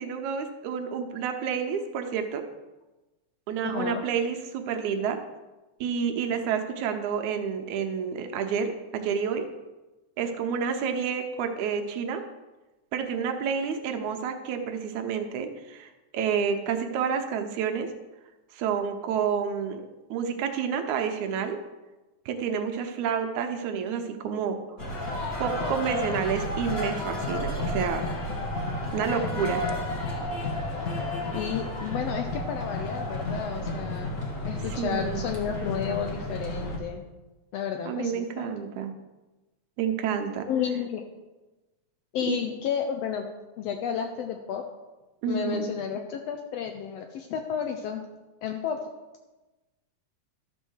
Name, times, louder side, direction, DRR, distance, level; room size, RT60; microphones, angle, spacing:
voice 1, 0.0-2.4 3.5-5.2 5.8-9.5 10.2-12.2 12.9-17.9 18.5-19.8 20.1-21.6 22.3-24.8 25.4-28.0 28.9-29.6 34.8-35.2 37.9-38.9 39.8-40.5 42.2-42.4 45.2-45.7, right 7 dB, 80° right, 5 dB, 2.2 m, -29 dB
voice 2, 3.6-4.0 31.3-34.1 34.5-37.0 37.5-38.5 40.5-41.1 42.1-43.3 43.6-44.7 45.3-48.0 48.4-48.8, left 8 dB, 80° left, 5 dB, 1.5 m, -31 dB
sound 1, 24.8-36.8, left 1 dB, 40° left, 1.4 m, -31 dB
12.5 x 4.5 x 6.3 m, 1.1 s
omnidirectional pair, 3.4 m